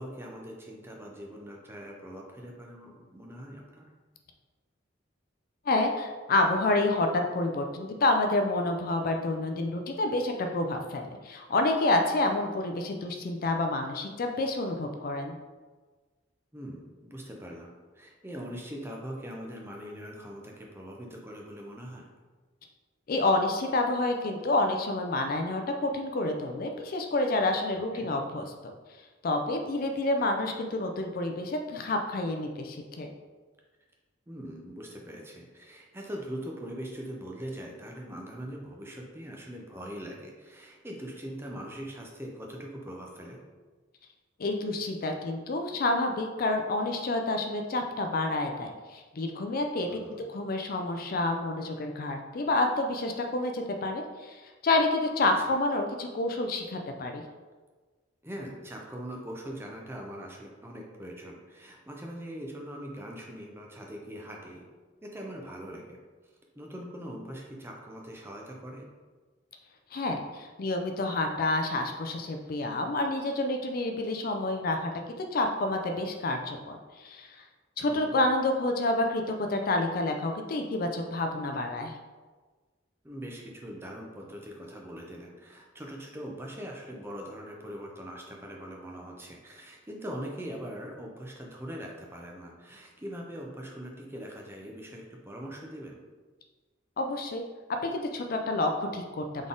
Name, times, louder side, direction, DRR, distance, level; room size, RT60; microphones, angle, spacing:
voice 1, 0.0-3.9 16.5-22.1 27.8-28.1 34.3-43.4 49.9-50.2 55.2-55.5 58.2-64.7 65.0-66.0 66.6-68.9 77.9-78.2 83.0-96.0, equal, 10° right, 0 dB, 0.6 m, -42 dB
voice 2, 5.7-15.4 23.1-28.7 29.2-33.1 44.4-57.2 69.9-74.9 75.2-77.4 77.8-81.9 97.0-97.4 97.8-99.5, left 2 dB, 50° left, 4 dB, 0.4 m, -29 dB
4.0 x 3.6 x 3.7 m, 1.4 s
head